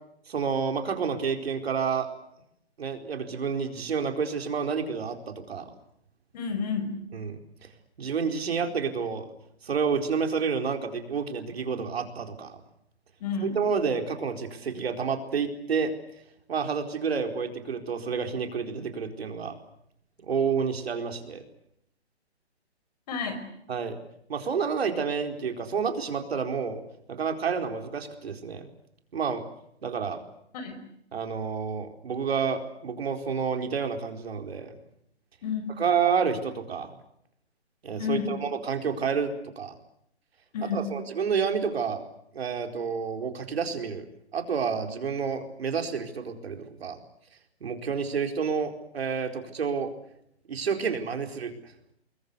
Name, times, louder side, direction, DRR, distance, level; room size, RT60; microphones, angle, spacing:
voice 1, 0.3-2.1 2.8-5.7 7.1-7.4 8.0-9.3 9.6-12.6 13.4-15.9 16.5-19.5 20.3-21.4 23.7-24.0 24.3-26.8 27.1-28.7 29.1-29.4 29.8-30.2 31.1-34.7 35.8-36.9 37.8-39.7 40.6-42.0 42.3-44.1 44.3-47.0 47.6-49.9 50.5-51.5, right 6 dB, 65° right, 5 dB, 4.5 m, -29 dB
voice 2, 6.3-7.0 13.2-13.5 20.4-20.5 23.1-23.4 30.5-30.8 35.4-35.8 38.0-38.4 40.5-40.9, left 5 dB, 35° left, 8 dB, 5.6 m, -31 dB
28.5 x 22.0 x 8.2 m, 0.75 s
hypercardioid pair, 155°, 33 cm